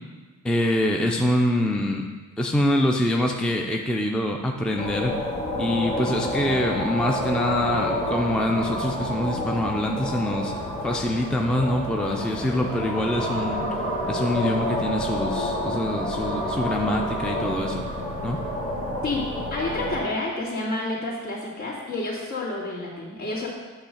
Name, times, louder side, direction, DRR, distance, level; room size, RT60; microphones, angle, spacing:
voice 1, 0.4-2.0 2.4-5.2 5.6-10.5 10.8-13.7 14.1-17.8 18.2-18.4, left 1 dB, 5° left, 2 dB, 0.4 m, -25 dB
sound 1, 4.8-20.0, equal, 20° left, 1.7 m, -29 dB
voice 2, 19.5-23.5, left 2 dB, 55° left, -6 dB, 2.6 m, -29 dB
8.7 x 3.1 x 6.5 m, 1.3 s
cardioid pair, 120°, 34 cm